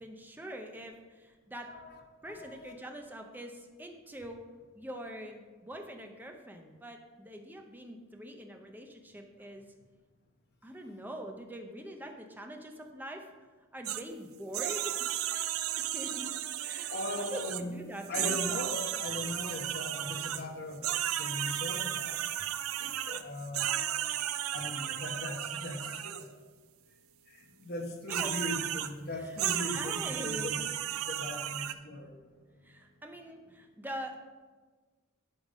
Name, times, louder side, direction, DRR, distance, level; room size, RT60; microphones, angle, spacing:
voice 1, 0.0-1.7 2.2-4.4 4.7-9.7 10.6-13.3 13.7-14.9 15.3-15.5 15.8-16.3 16.6-18.7 28.1-28.4 29.2-29.4 29.7-30.7 32.6-34.2, equal, 10° right, 3 dB, 0.7 m, -44 dB
voice 2, 2.2-2.6 16.9-17.7 18.1-22.2 22.8-24.0 24.5-26.3 27.3-30.6 30.9-32.1, left 1 dB, 50° left, 2 dB, 1.2 m, -39 dB
sound 1, 13.8-14.0 14.5-17.6 18.0-20.4 20.8-26.2 28.1-28.9 29.4-31.7, right 12 dB, 80° right, 0.4 m, -34 dB
10.5 x 3.9 x 5.1 m, 1.4 s
head